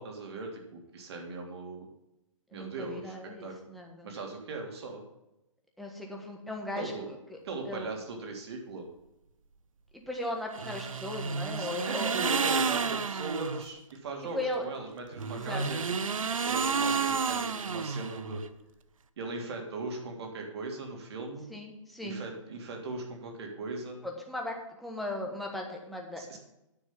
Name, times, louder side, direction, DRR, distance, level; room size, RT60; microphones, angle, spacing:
voice 1, 0.0-1.9 2.5-3.5 4.0-5.0 6.8-7.1 7.4-8.9 11.6-15.8 16.4-18.4 19.2-21.5 22.0-24.0 26.1-26.4, right 3 dB, 50° right, 2 dB, 3.2 m, -38 dB
voice 2, 2.5-4.1 5.8-6.9 7.3-7.4 7.6-7.9 10.1-12.5 14.3-14.7 15.3-15.6 21.5-22.2 24.0-26.4, left 1 dB, ahead, 0 dB, 1.5 m, -37 dB
sound 1, 10.5-13.7 15.1-18.5, right 5 dB, 80° right, 0.9 m, -31 dB
9.8 x 6.3 x 7.3 m, 0.91 s
hypercardioid pair, 150°, 17 cm